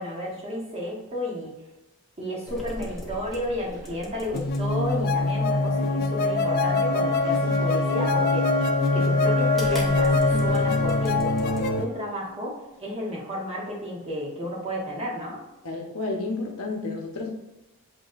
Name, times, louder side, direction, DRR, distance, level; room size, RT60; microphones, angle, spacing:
voice 1, 0.0-1.5 2.2-8.5 8.9-15.4, equal, 25° right, -4 dB, 1.2 m, -32 dB
sound 1, 2.5-11.8, left 1 dB, ahead, 0.7 m, -42 dB
sound 2, 4.3-11.8, left 2 dB, 45° left, 0.4 m, -24 dB
sound 3, 4.6-12.6, left 3 dB, 75° right, 1.0 m, -31 dB
voice 2, 15.6-17.3, left 3 dB, 75° left, 0 dB, 0.9 m, -31 dB
7.7 x 2.6 x 2.5 m, 1.0 s
head